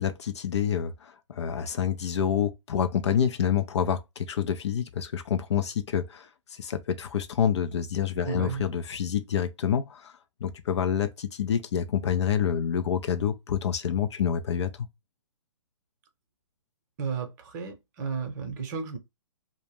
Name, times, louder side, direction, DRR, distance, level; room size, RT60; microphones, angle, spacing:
voice 1, 0.0-10.1 10.4-14.7, left 8 dB, 60° left, 0.4 m, -27 dB
voice 2, 8.3-8.6 17.0-19.0, right 5 dB, 35° right, 0.7 m, -33 dB
2.1 x 2.1 x 3.1 m
hypercardioid pair, 140°, 17 cm